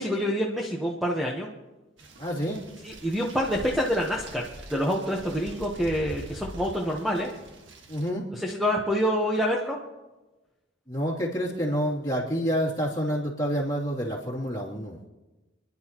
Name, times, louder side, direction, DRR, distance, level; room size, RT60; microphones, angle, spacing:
voice 1, 0.0-1.5 2.8-7.3 8.3-9.8, equal, ahead, -2 dB, 1.1 m, -27 dB
sound 1, 2.0-8.1, right 1 dB, 70° right, 1.6 m, -44 dB
voice 2, 2.2-2.6 7.9-8.3 10.9-15.0, equal, 20° left, -6 dB, 2.9 m, -28 dB
29.5 x 11.0 x 3.0 m, 1.1 s
head